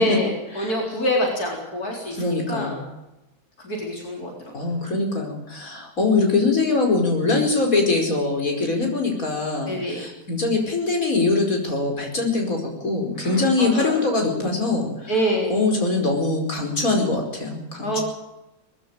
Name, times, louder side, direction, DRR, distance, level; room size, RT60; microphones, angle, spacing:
voice 1, 0.0-2.8 3.6-4.3 9.7-10.0 13.2-14.0 15.1-15.5 17.8-18.0, equal, 85° left, 0 dB, 4.6 m, -25 dB
voice 2, 2.2-2.8 4.5-15.2 15.5-18.0, left 3 dB, 65° left, 1 dB, 5.4 m, -23 dB
20.5 x 15.0 x 9.0 m, 0.93 s
omnidirectional pair, 1.6 m